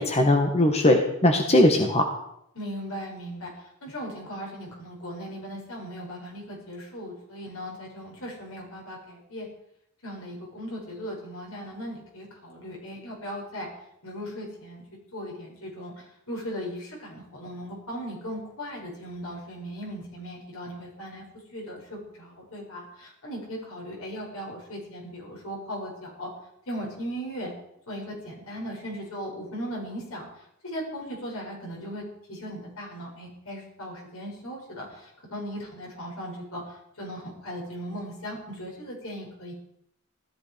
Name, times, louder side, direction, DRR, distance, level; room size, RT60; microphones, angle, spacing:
voice 1, 0.0-2.0, left 1 dB, 30° left, 3 dB, 1.6 m, -20 dB
voice 2, 2.5-9.5 10.0-13.7 14.0-14.8 15.1-21.2 21.5-26.3 26.7-27.5 27.9-39.5, equal, 80° left, -2 dB, 7.8 m, -38 dB
17.0 x 14.0 x 5.2 m, 0.76 s
head